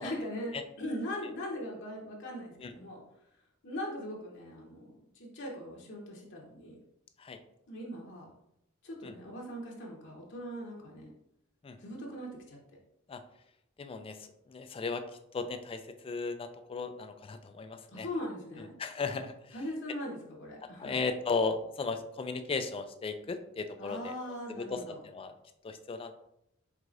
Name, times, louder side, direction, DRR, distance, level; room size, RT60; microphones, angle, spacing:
voice 1, 0.0-3.0 3.6-6.8 7.7-8.3 8.8-11.1 11.8-12.6 17.9-18.7 19.5-21.0 23.8-25.0, equal, 60° left, -2 dB, 0.9 m, -40 dB
voice 2, 13.8-15.1 15.3-18.1 18.8-19.5 20.6-24.1 24.5-25.3 25.6-26.1, left 4 dB, 25° left, 8 dB, 0.3 m, -36 dB
4.7 x 3.6 x 2.5 m, 0.80 s
head